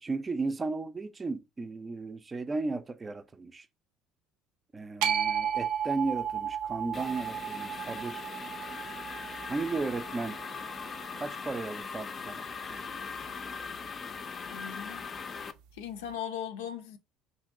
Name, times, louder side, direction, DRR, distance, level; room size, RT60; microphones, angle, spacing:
voice 1, 0.0-3.7 4.7-8.2 9.5-10.4 11.1-13.0, right 3 dB, 25° right, 0.4 m, -35 dB
sound 1, 5.0-11.2, right 8 dB, 80° right, 0.5 m, -34 dB
sound 2, 6.9-15.5, left 5 dB, 35° left, 0.5 m, -40 dB
voice 2, 14.5-15.0 15.7-17.0, left 9 dB, 85° left, 0.5 m, -38 dB
2.9 x 2.6 x 3.6 m
supercardioid pair, 80°, 0 cm